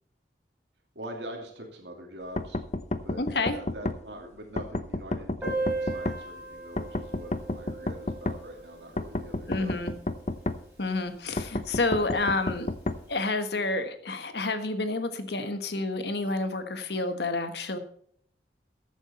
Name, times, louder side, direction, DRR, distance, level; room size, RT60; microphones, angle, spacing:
voice 1, 0.9-2.6 3.0-9.7, right 1 dB, 85° right, 2 dB, 2.6 m, -43 dB
sound 1, 2.4-4.0 4.6-6.2 6.8-8.4 9.0-10.6 11.4-13.0, left 2 dB, 40° left, 0.7 m, -30 dB
voice 2, 3.2-3.6 9.5-9.9 10.8-12.7 13.1-17.8, left 2 dB, 70° left, 8 dB, 1.4 m, -29 dB
Piano, 5.4-10.8 11.0-11.1 11.3-11.5 11.8-11.9 12.7-12.9, right 2 dB, 10° right, 5.4 m, -37 dB
14.0 x 8.1 x 4.3 m, 0.63 s
head